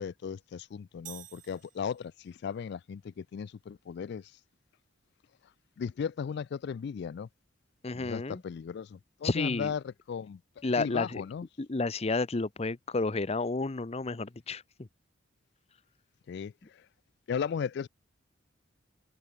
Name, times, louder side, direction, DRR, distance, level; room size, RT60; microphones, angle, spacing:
voice 1, 0.0-4.4 5.4-7.3 7.9-11.5 16.3-16.9 17.3-17.9, left 6 dB, 55° left, 0.3 m, -36 dB
sound 1, 1.1-2.4, right 12 dB, 40° right, 0.8 m, -50 dB
voice 2, 7.8-8.4 9.2-9.7 10.6-11.2 11.6-14.9, left 3 dB, 30° left, 0.7 m, -31 dB
head